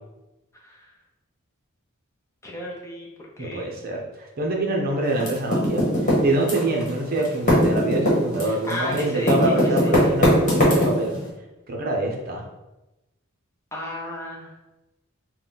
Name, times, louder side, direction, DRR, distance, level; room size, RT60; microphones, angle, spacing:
voice 1, 2.4-3.1 3.4-3.7 8.5-9.9 13.7-14.5, left 1 dB, 15° left, -3 dB, 0.7 m, -34 dB
voice 2, 3.4-11.1 11.7-12.4, right 2 dB, 45° right, 0 dB, 0.7 m, -25 dB
Typing, 5.2-6.9 7.2-11.2, equal, 40° left, 1.3 m, -19 dB
4.0 x 2.2 x 3.8 m, 0.98 s
head